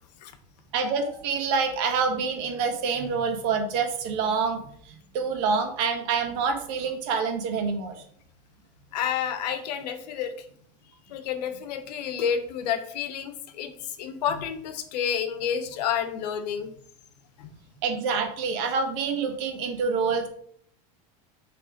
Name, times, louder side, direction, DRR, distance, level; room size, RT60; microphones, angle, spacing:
voice 1, 0.7-4.6 4.9-7.9 17.8-20.3, right 5 dB, 55° right, 5 dB, 1.5 m, -27 dB
voice 2, 8.9-10.3 11.1-16.7 17.4-17.5, left 8 dB, 90° left, 9 dB, 1.1 m, -30 dB
7.0 x 3.4 x 5.1 m, 0.64 s
supercardioid pair, 150°, 20 cm